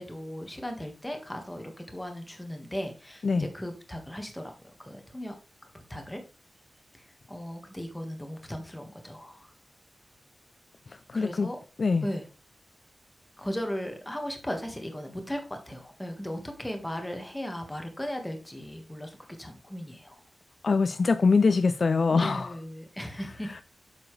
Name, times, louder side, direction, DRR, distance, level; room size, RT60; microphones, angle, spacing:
voice 1, 0.0-4.5 4.8-5.3 5.9-6.2 6.9-9.5 11.1-11.6 12.0-12.3 13.4-20.2 22.1-23.6, equal, 10° left, 1.6 m, -37 dB
voice 2, 11.1-11.5 11.8-12.0 20.6-22.5, left 4 dB, 45° left, 0.4 m, -23 dB
8.1 x 7.2 x 3.2 m
wide cardioid pair, 165°, 0 cm